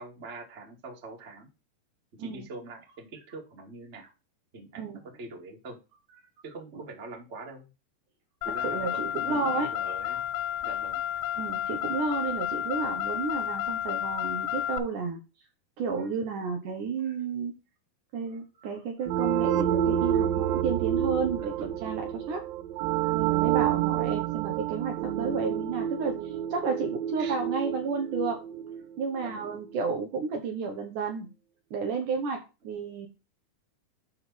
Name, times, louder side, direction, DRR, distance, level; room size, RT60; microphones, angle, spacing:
voice 1, 0.0-1.5 2.2-4.1 4.5-5.8 6.4-7.7 8.4-10.3 10.6-11.0 21.3-21.9 24.1-24.2 27.2-27.4 29.2-29.5, right 3 dB, 25° right, 0 dB, 1.9 m, -44 dB
Car, 8.4-14.8, left 11 dB, 80° left, 2.2 m, -31 dB
voice 2, 8.5-9.7 11.4-15.2 15.8-17.6 18.1-22.4 22.8-28.4 29.0-31.3 31.7-33.1, right 5 dB, 65° right, 3 dB, 2.4 m, -32 dB
sound 1, 19.1-29.5, right 11 dB, 80° right, 2.3 m, -29 dB
11.5 x 3.9 x 4.1 m, 0.29 s
omnidirectional pair, 4.3 m